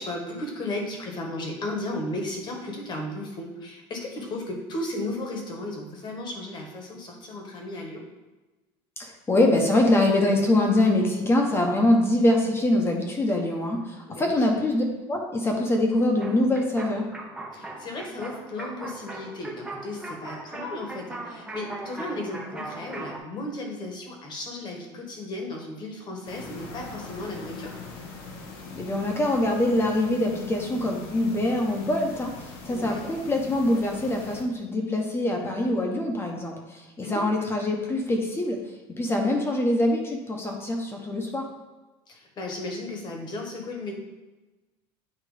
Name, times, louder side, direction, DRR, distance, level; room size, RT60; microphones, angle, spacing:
voice 1, 0.0-8.0 14.1-14.4 17.5-27.7 32.7-33.1 37.0-37.2 42.1-43.9, left 1 dB, 35° left, 1 dB, 1.5 m, -35 dB
voice 2, 9.0-17.1 28.7-38.6 38.9-41.5, left 1 dB, 20° left, 1 dB, 1.0 m, -24 dB
sound 1, 16.2-23.2, right 2 dB, 5° right, 0.8 m, -39 dB
sound 2, 26.2-34.4, left 4 dB, 85° left, 1.4 m, -42 dB
8.6 x 2.9 x 5.0 m, 1.1 s
cardioid pair, 135°, 13 cm